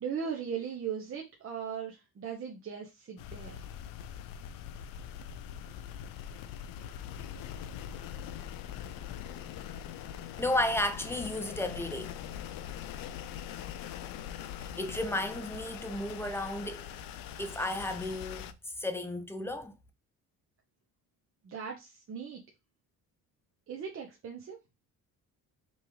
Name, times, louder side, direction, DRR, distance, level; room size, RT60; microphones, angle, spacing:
voice 1, 0.0-3.6 21.4-22.4 23.7-24.6, right 7 dB, 40° right, 0.9 m, -38 dB
sound 1, 3.2-18.5, left 9 dB, 85° left, 0.5 m, -42 dB
voice 2, 10.4-12.2 14.6-16.8 17.4-18.5 18.8-19.7, left 1 dB, 5° left, 0.5 m, -33 dB
5.3 x 2.4 x 3.1 m
cardioid pair, 125°, 33 cm